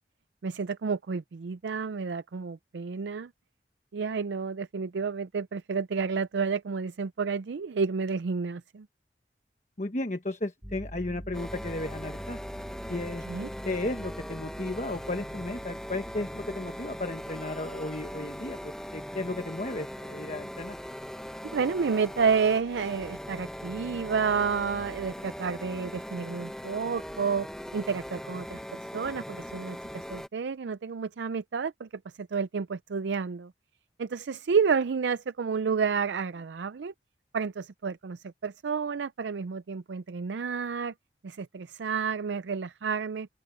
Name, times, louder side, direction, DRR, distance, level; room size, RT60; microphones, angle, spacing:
voice 1, 0.4-3.3 3.9-8.9 13.3-13.5 21.5-27.5 27.7-31.9 32.2-33.5 34.0-36.9 37.3-40.9 41.2-43.3, right 5 dB, 85° right, 0.5 m, -30 dB
voice 2, 9.8-12.4 12.9-13.2 13.6-20.8, left 2 dB, 40° left, 1.1 m, -34 dB
sound 1, 10.6-20.3 21.2-25.1, equal, 20° right, 2.8 m, -47 dB
sound 2, 11.3-30.3, equal, 5° left, 1.0 m, -40 dB
open air
head